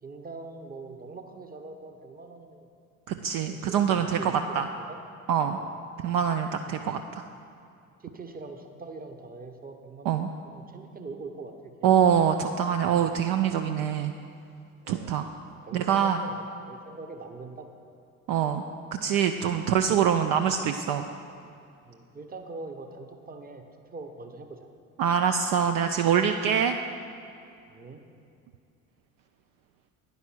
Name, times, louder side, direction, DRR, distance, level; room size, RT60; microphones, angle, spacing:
voice 1, 0.0-2.7 3.5-5.0 5.5-5.7 6.7-6.8 8.0-11.5 11.8-12.1 14.8-15.1 15.6-17.7 21.8-24.7 27.7-28.0, right 3 dB, 20° right, 6 dB, 0.9 m, -42 dB
voice 2, 3.1-4.7 5.3-5.6 6.0-7.2 10.1-10.3 11.8-14.1 14.9-15.3 15.7-16.2 18.3-18.6 18.9-21.1 25.0-26.8, right 8 dB, 55° right, 7 dB, 0.5 m, -24 dB
9.7 x 5.4 x 6.0 m, 2.5 s
hypercardioid pair, 55°, 41 cm